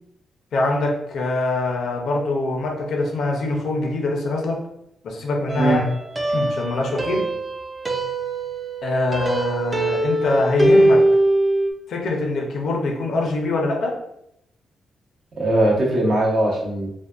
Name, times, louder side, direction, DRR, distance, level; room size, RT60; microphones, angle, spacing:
voice 1, 0.5-4.6 5.0-5.8 6.3-7.3 8.8-11.0 11.9-14.0, left 2 dB, 75° left, 0 dB, 0.6 m, -23 dB
sound 1, 5.5-11.7, right 1 dB, 20° right, 0.4 m, -21 dB
voice 2, 5.5-5.8 15.4-16.9, right 1 dB, 65° right, -3 dB, 0.8 m, -20 dB
2.6 x 2.2 x 2.4 m, 0.76 s
cardioid pair, 110°, 0 cm